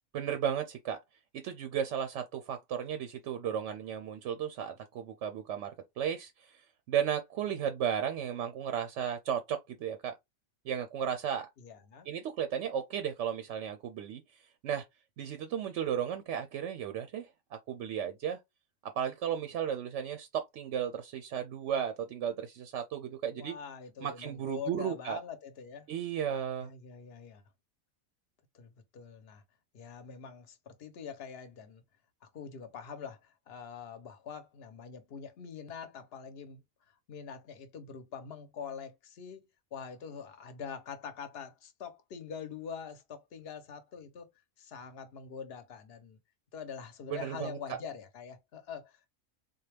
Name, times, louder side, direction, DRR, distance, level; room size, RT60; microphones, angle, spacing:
voice 1, 0.1-1.0 1.3-5.7 6.0-6.6 6.9-10.2 10.6-11.5 12.0-14.2 14.6-14.8 15.2-17.3 17.7-18.4 18.8-23.5 24.0-25.2 25.9-26.7 47.1-47.8, right 9 dB, 70° right, 0.8 m, -34 dB
voice 2, 11.6-12.1 23.3-25.9 26.6-27.4 28.5-29.4 29.7-31.8 32.2-36.6 37.1-44.3 44.6-46.2 46.5-49.1, left 6 dB, 50° left, 0.9 m, -44 dB
3.9 x 2.3 x 3.3 m
omnidirectional pair, 1.4 m